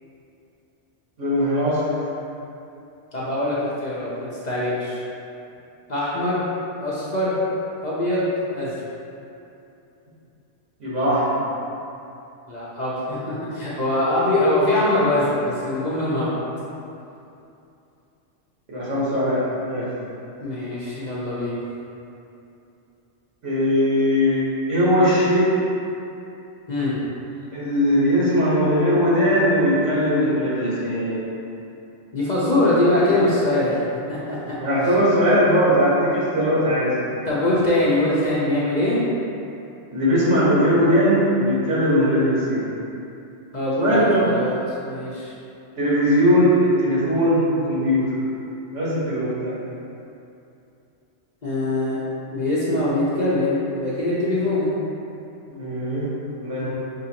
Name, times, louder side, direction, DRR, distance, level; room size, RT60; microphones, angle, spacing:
voice 1, 1.2-1.9 10.8-11.3 18.7-19.9 23.4-25.5 27.5-31.3 34.5-37.0 39.9-42.6 43.8-44.2 45.8-48.1 48.7-49.5 55.5-56.7, equal, 75° right, -9 dB, 1.6 m, -20 dB
voice 2, 3.1-5.0 5.9-6.5 6.8-7.4 7.8-8.3 8.5-8.7 12.5-16.4 20.4-21.6 26.7-27.0 32.1-33.8 34.1-34.6 37.3-39.0 43.5-44.6 44.8-45.3 51.4-52.0 52.3-54.7, left 1 dB, 45° left, -9 dB, 0.7 m, -22 dB
5.6 x 2.6 x 2.8 m, 2.7 s
omnidirectional pair, 1.2 m